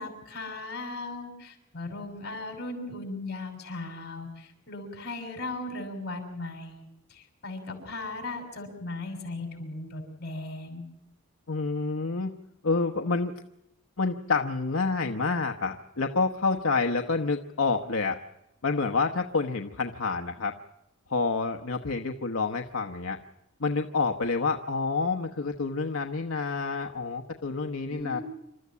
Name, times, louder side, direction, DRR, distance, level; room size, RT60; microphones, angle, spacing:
voice 1, 0.0-10.8 27.9-28.2, left 2 dB, 55° left, 4 dB, 6.3 m, -37 dB
voice 2, 11.5-12.4 12.6-13.3 14.0-18.2 18.6-20.6 21.1-23.2 23.6-28.2, left 4 dB, 75° left, 4 dB, 1.0 m, -28 dB
28.0 x 13.5 x 8.4 m, 0.92 s
head